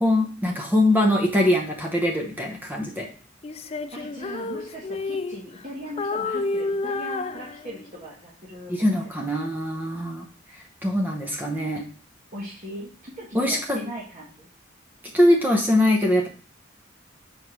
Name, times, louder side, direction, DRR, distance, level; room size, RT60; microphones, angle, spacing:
voice 1, 0.0-3.1 8.7-10.2 10.8-11.8 13.3-13.8 15.1-16.3, left 1 dB, 10° right, 1 dB, 1.0 m, -22 dB
Female singing, 3.4-5.7 6.0-8.0, left 3 dB, 30° left, 0.3 m, -30 dB
voice 2, 3.9-8.7 9.2-9.5 12.3-14.5, equal, 40° right, -7 dB, 1.8 m, -39 dB
5.1 x 4.4 x 6.0 m, 0.39 s
head